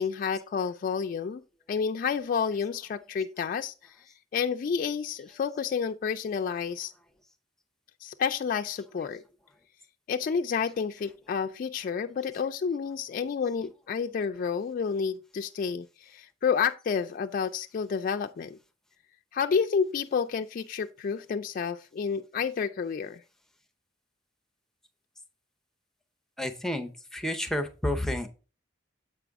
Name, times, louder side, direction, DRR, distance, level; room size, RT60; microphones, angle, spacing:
voice 1, 0.0-1.4 1.7-3.7 4.3-6.9 8.0-9.2 10.1-18.6 19.3-23.2, left 6 dB, 45° left, 0.3 m, -30 dB
voice 2, 26.4-28.3, left 1 dB, 5° left, 0.6 m, -30 dB
7.5 x 4.9 x 3.5 m
head